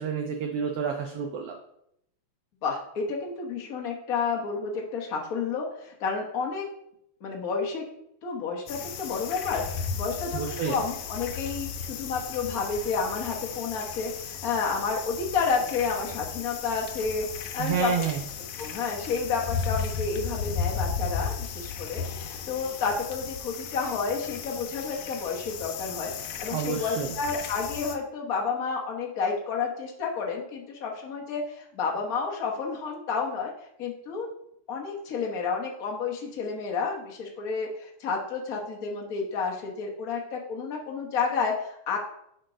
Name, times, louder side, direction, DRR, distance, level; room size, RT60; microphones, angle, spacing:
voice 1, 0.0-1.6 10.3-10.8 17.6-18.2 26.5-27.2, right 7 dB, 80° right, 4 dB, 1.3 m, -29 dB
voice 2, 2.6-6.7 7.2-7.8 8.2-17.3 17.5-17.9 18.6-33.5 33.8-34.3 34.7-42.0, left 5 dB, 65° left, -1 dB, 0.8 m, -30 dB
sound 1, 8.7-28.0, left 6 dB, 85° left, 2.1 m, -35 dB
6.6 x 4.5 x 5.0 m, 0.76 s
omnidirectional pair, 3.4 m